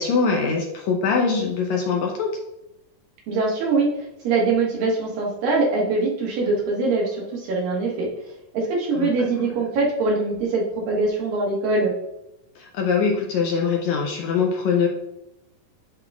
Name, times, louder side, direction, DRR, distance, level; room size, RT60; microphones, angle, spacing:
voice 1, 0.0-2.4 9.0-9.3 12.6-14.9, left 5 dB, 80° left, 0 dB, 1.7 m, -23 dB
voice 2, 3.3-8.1 8.5-11.9, right 3 dB, 85° right, -3 dB, 3.3 m, -23 dB
11.0 x 3.8 x 2.4 m, 0.88 s
omnidirectional pair, 3.9 m